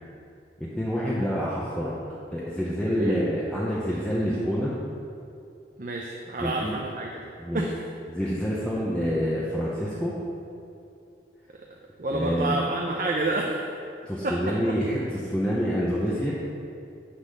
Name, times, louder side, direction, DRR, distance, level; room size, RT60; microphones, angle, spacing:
voice 1, 0.6-1.9 2.3-4.7 6.4-6.8 7.4-7.7 8.1-10.2 12.1-12.6 14.1-16.3, equal, 5° left, -7 dB, 0.8 m, -27 dB
voice 2, 2.9-3.3 5.8-7.3 7.5-7.7 12.0-13.6 14.2-14.3, right 2 dB, 45° right, -1 dB, 0.6 m, -28 dB
9.7 x 4.1 x 6.7 m, 2.5 s
head